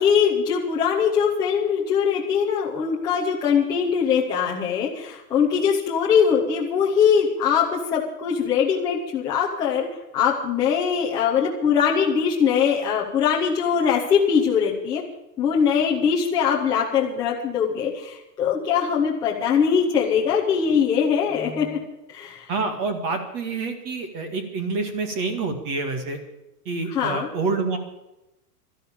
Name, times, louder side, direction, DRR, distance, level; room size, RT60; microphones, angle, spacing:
voice 1, 0.0-9.9 10.1-15.0 15.4-21.8 22.1-22.5 26.9-27.3, left 7 dB, 10° left, -4 dB, 0.9 m, -22 dB
voice 2, 22.5-26.2 26.7-27.8, right 3 dB, 25° right, 7 dB, 2.0 m, -27 dB
12.5 x 12.0 x 8.8 m, 0.92 s
supercardioid pair, 180°, 47 cm